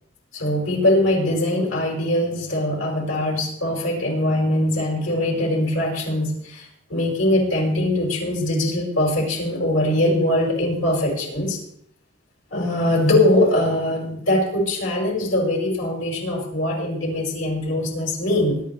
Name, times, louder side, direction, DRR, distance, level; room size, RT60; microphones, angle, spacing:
voice 1, 0.3-11.6 12.5-18.6, left 1 dB, 85° left, -2 dB, 5.5 m, -22 dB
23.5 x 10.5 x 3.2 m, 0.68 s
head